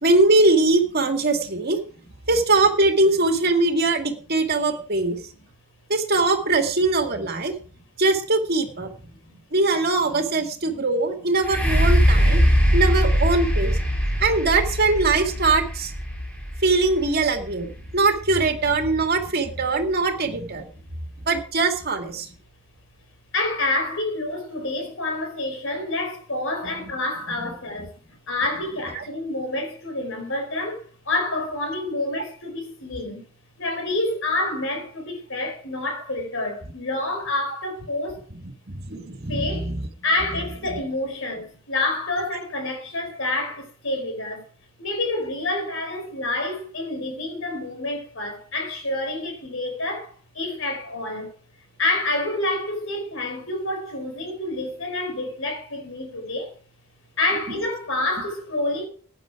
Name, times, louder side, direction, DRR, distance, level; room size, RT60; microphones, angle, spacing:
voice 1, 0.0-1.8 2.3-5.2 5.9-7.5 8.0-9.0 9.3-12.4 12.7-13.8 14.2-15.9 16.6-20.7 21.3-22.3 26.6-27.0 27.4-27.9 28.5-29.0 38.1-39.9 40.2-40.8 57.3-57.6 58.2-58.3, right 3 dB, 50° right, 2.2 m, -22 dB
sound 1, 11.4-19.1 19.8-19.9, equal, 5° left, 5.2 m, -22 dB
voice 2, 23.3-33.2 33.6-38.2 39.3-39.7 40.0-44.4 44.8-51.3 51.8-56.5 57.2-58.9, left 2 dB, 65° left, 4.8 m, -28 dB
15.0 x 9.6 x 4.8 m
head